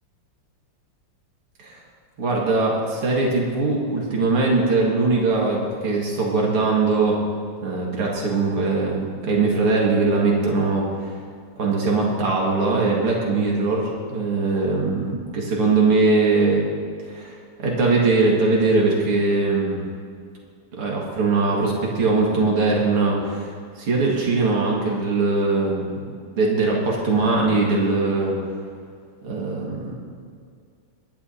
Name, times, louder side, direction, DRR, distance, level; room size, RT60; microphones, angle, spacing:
voice 1, 2.2-7.2 7.6-11.2 11.6-16.6 17.0-19.8 20.8-28.4 29.2-29.9, right 3 dB, 90° right, -3 dB, 2.8 m, -21 dB
23.5 x 11.5 x 2.8 m, 2.2 s
omnidirectional pair, 2.4 m